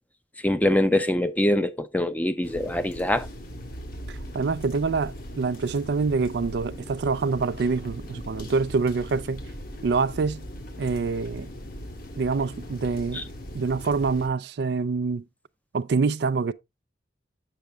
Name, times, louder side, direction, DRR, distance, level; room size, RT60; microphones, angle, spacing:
voice 1, 0.4-3.3 13.1-13.2, left 1 dB, 10° left, 0.6 m, -23 dB
sound 1, 2.4-14.3, equal, 55° left, 1.6 m, -39 dB
voice 2, 4.1-9.4 9.8-10.4 10.8-11.5 12.2-13.2 13.5-15.2 15.7-16.5, right 4 dB, 65° right, 0.4 m, -26 dB
8.3 x 6.4 x 3.3 m
head